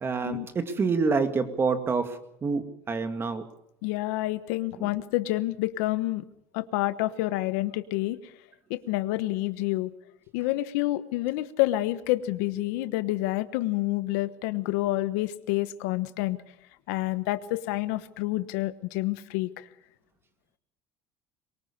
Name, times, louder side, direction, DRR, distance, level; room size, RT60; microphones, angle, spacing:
voice 1, 0.0-3.4 4.8-4.9, right 4 dB, 30° right, 8 dB, 2.3 m, -27 dB
voice 2, 3.8-6.2 6.5-8.3 8.7-9.9 10.3-16.4 16.9-19.7, left 17 dB, 80° left, 12 dB, 1.2 m, -28 dB
23.0 x 19.5 x 7.0 m, 0.79 s
supercardioid pair, 110°, 8 cm